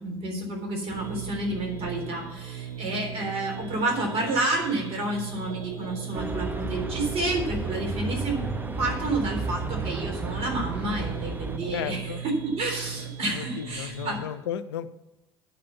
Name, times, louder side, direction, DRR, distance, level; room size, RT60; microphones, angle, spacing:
voice 1, 0.0-8.4 8.8-14.2, right 2 dB, 50° right, 1 dB, 3.5 m, -30 dB
sound 1, 0.9-14.2, right 8 dB, 70° right, 2.1 m, -38 dB
sound 2, 6.1-11.6, right 2 dB, 15° right, 0.7 m, -33 dB
voice 2, 11.7-12.2 13.3-14.9, left 10 dB, 75° left, 13 dB, 0.6 m, -34 dB
10.0 x 5.1 x 7.0 m, 0.99 s
hypercardioid pair, 65°, 13 cm